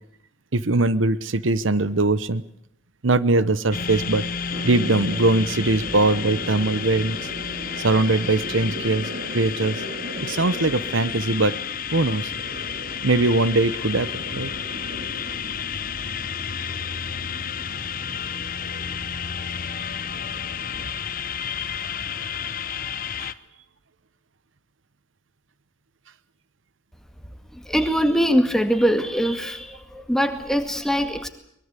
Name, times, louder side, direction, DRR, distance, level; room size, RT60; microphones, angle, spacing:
voice 1, 0.5-2.4 3.0-4.2 4.6-7.2 7.8-9.8 10.2-11.5 11.9-12.3 13.0-14.5 23.2-23.3, right 2 dB, 80° right, 16 dB, 1.0 m, -21 dB
sound 1, 3.7-23.3, left 7 dB, 45° left, 0.9 m, -31 dB
sound 2, 4.5-20.8, right 1 dB, 50° right, 4.6 m, -38 dB
voice 2, 27.5-31.3, equal, 5° left, 7 dB, 2.1 m, -22 dB
23.5 x 21.5 x 8.3 m, 0.76 s
head